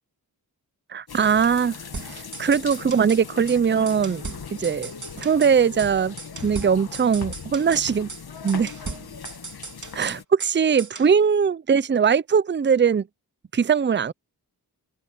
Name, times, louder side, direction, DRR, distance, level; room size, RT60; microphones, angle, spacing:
voice 1, 0.9-1.8 2.1-4.2 4.5-4.9 5.2-6.2 6.4-8.1 8.4-8.7 9.9-13.1 13.5-14.1, right 6 dB, 30° right, 0.5 m, -21 dB
sound 1, 1.1-10.2, left 6 dB, 70° left, 1.6 m, -39 dB
sound 2, 1.9-3.2 3.5-3.6 3.9-5.5 5.8-5.9 6.2-7.8 8.1-8.2 8.5-10.5 10.8-11.1, right 4 dB, 50° right, 3.0 m, -38 dB
open air
wide cardioid pair, 85°, 38 cm